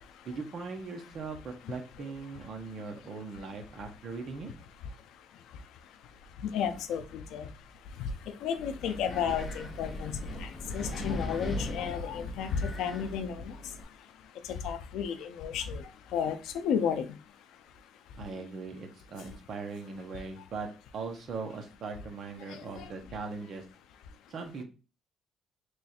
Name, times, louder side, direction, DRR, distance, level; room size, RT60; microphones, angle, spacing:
voice 1, 0.2-4.5 18.2-23.6 24.3-24.6, right 4 dB, 45° right, 3 dB, 0.8 m, -40 dB
voice 2, 6.5-7.5 8.4-13.6 14.6-15.8 16.1-17.1 22.7-22.9, left 7 dB, 90° left, 10 dB, 0.4 m, -32 dB
Wind, 8.6-13.8, left 2 dB, 30° left, 0.6 m, -39 dB
3.1 x 2.4 x 4.1 m, 0.34 s
cardioid pair, 155°, 0 cm